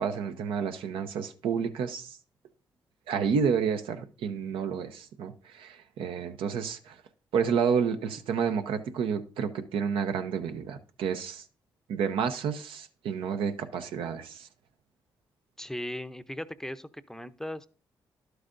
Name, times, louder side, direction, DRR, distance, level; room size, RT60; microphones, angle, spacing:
voice 1, 0.0-2.2 3.1-7.0 7.3-11.4 11.9-14.5, right 6 dB, 85° right, 0.7 m, -30 dB
voice 2, 15.6-17.7, left 1 dB, 5° left, 0.6 m, -38 dB
11.0 x 7.9 x 2.6 m
supercardioid pair, 55°, 9 cm